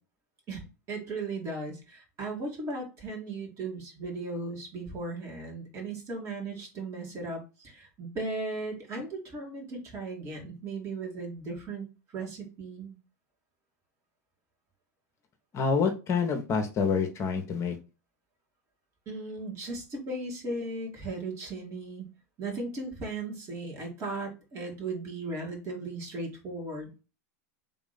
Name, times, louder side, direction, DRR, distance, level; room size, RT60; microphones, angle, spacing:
voice 1, 0.5-11.9 12.1-13.0 19.1-22.1 22.4-26.9, right 2 dB, 35° right, 1 dB, 2.2 m, -37 dB
voice 2, 15.5-17.8, left 5 dB, 35° left, 5 dB, 1.0 m, -27 dB
3.6 x 3.1 x 3.9 m, 0.30 s
hypercardioid pair, 95°, 9 cm